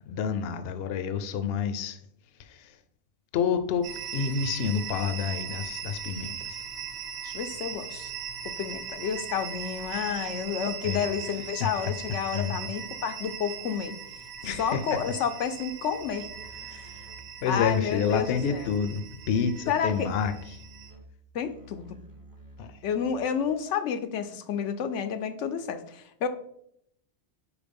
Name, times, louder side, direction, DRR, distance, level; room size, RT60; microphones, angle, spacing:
voice 1, 0.1-2.0 2.4-2.7 3.3-6.6 10.8-11.1 11.6-11.7 12.3-12.6 14.4-14.8 16.7-17.1 17.4-20.3 22.6-22.8, left 6 dB, 65° left, 10 dB, 0.8 m, -29 dB
sound 1, 3.8-20.9, right 8 dB, 65° right, 1.0 m, -39 dB
voice 2, 7.2-8.1 8.6-14.0 14.6-16.3 16.7-16.8 17.5-18.7 19.7-20.1 21.3-22.0 22.8-26.3, left 7 dB, 90° left, 9 dB, 1.0 m, -30 dB
Musical instrument, 15.9-23.5, right 1 dB, 20° right, 0.8 m, -51 dB
5.0 x 4.8 x 5.2 m, 0.72 s
omnidirectional pair, 1.2 m